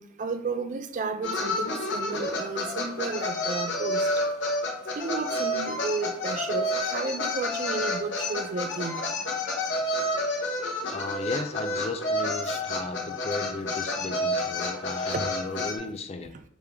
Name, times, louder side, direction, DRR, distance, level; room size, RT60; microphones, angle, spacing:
voice 1, 0.0-4.1 5.0-9.1 12.4-12.6 15.1-15.3 16.3-16.4, right 4 dB, 40° right, 9 dB, 0.3 m, -33 dB
sound 1, 1.2-15.8, left 1 dB, 70° left, 0.7 m, -29 dB
voice 2, 10.9-16.3, left 3 dB, 35° left, 8 dB, 0.4 m, -35 dB
3.5 x 2.9 x 3.3 m, 0.71 s
head